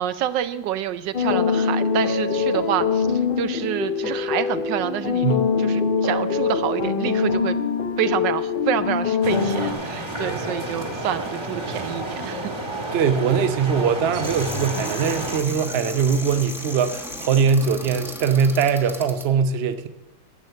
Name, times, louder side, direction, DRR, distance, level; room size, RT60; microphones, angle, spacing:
voice 1, 0.0-5.3 5.6-7.6 8.0-12.5, right 10 dB, 80° right, 12 dB, 1.3 m, -27 dB
sound 1, 1.1-9.7, left 5 dB, 75° left, 0.4 m, -23 dB
sound 2, 9.2-15.4, right 1 dB, 20° right, 1.2 m, -30 dB
voice 2, 12.9-19.9, right 6 dB, 55° right, 9 dB, 0.7 m, -21 dB
sound 3, 14.2-19.3, left 1 dB, ahead, 0.9 m, -35 dB
11.5 x 7.8 x 6.6 m, 1.1 s
omnidirectional pair, 1.9 m